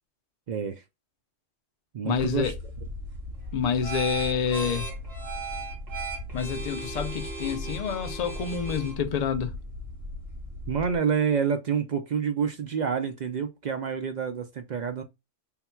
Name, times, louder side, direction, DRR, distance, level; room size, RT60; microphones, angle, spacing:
voice 1, 0.5-0.8 1.9-2.5 10.7-15.0, right 6 dB, 60° right, 0.4 m, -28 dB
voice 2, 2.0-2.6 3.5-4.9 6.3-9.5, left 7 dB, 50° left, 0.5 m, -28 dB
sound 1, 2.1-11.0, right 1 dB, 85° right, 1.8 m, -36 dB
3.7 x 2.3 x 4.4 m
omnidirectional pair, 1.3 m